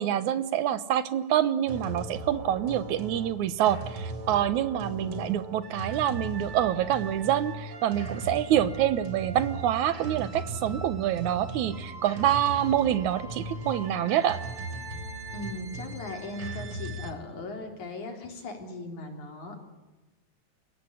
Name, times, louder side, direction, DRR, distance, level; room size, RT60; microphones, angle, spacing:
voice 1, 0.0-14.4, right 11 dB, 80° right, 14 dB, 2.4 m, -26 dB
sound 1, 1.7-17.1, right 2 dB, 50° right, 3.6 m, -38 dB
voice 2, 15.3-19.6, left 2 dB, 75° left, 4 dB, 5.1 m, -38 dB
29.0 x 16.0 x 9.9 m, 1.1 s
omnidirectional pair, 3.4 m